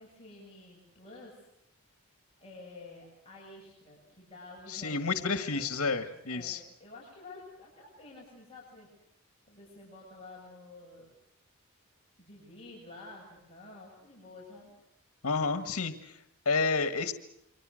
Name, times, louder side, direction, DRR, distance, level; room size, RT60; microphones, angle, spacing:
voice 1, 0.0-1.5 2.4-8.9 9.5-11.1 12.2-14.7, left 2 dB, 25° left, -3 dB, 7.4 m, -50 dB
voice 2, 4.7-6.6 15.2-17.1, left 4 dB, 90° left, 9 dB, 1.7 m, -30 dB
28.5 x 23.5 x 6.5 m, 0.78 s
head